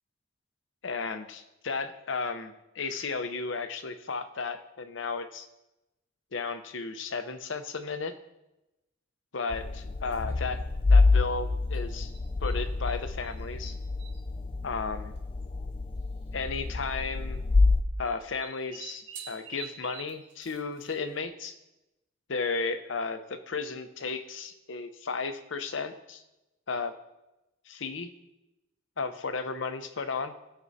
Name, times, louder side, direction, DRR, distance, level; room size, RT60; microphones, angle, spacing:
voice 1, 0.8-5.5 6.3-8.1 9.3-10.6 10.9-12.1 12.4-13.8 14.6-15.1 16.3-17.4 18.0-21.5 22.3-26.2 26.7-26.9 27.7-28.1 29.0-30.3, left 4 dB, 70° left, 9 dB, 0.7 m, -34 dB
sound 1, 9.5-17.8, left 3 dB, 30° left, 0.4 m, -27 dB
sound 2, 10.0-10.4 11.7-13.0 13.2-14.2 15.2-15.3 15.4-15.5 16.5-16.8 18.0-21.2, right 6 dB, 65° right, 2.3 m, -47 dB
17.0 x 6.1 x 2.7 m, 0.97 s
head